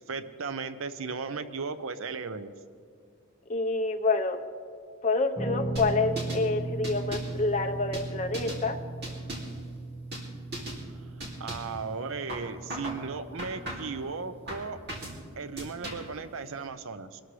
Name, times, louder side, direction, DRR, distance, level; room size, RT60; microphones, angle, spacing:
voice 1, 0.1-2.5 11.2-14.8 15.4-17.2, right 4 dB, 65° right, 11 dB, 0.6 m, -36 dB
voice 2, 3.5-4.4 5.0-8.8, left 3 dB, 35° left, 4 dB, 0.9 m, -27 dB
Guitar, 5.3-14.6, right 2 dB, 20° right, 1.3 m, -38 dB
sound 1, 5.8-6.5 6.8-7.4 7.9-8.6 9.0-9.6 10.1-10.3 10.5-10.8 11.2-11.8 12.3-13.0 13.4-14.0 14.5-15.2 15.6-16.2, right 1 dB, 50° right, 2.5 m, -38 dB
23.5 x 12.5 x 3.2 m, 2.2 s
head